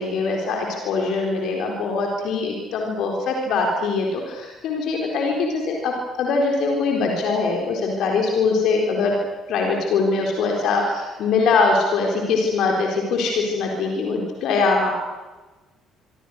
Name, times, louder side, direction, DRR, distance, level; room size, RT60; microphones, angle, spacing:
voice 1, 0.0-9.1 9.5-14.9, left 4 dB, 55° left, 1 dB, 4.2 m, -22 dB
25.5 x 25.0 x 6.6 m, 1.2 s
figure-of-eight pair, 50°, 0 cm